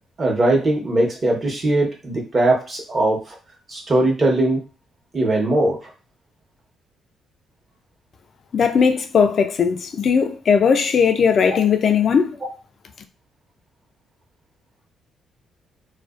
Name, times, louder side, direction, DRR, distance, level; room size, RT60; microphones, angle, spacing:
voice 1, 0.2-3.3 3.7-4.6 5.1-5.9, right 2 dB, 35° right, 0.9 m, -20 dB
voice 2, 8.5-12.4, left 6 dB, 55° left, 0.3 m, -18 dB
2.4 x 2.1 x 2.4 m
cardioid pair, 90°, 0 cm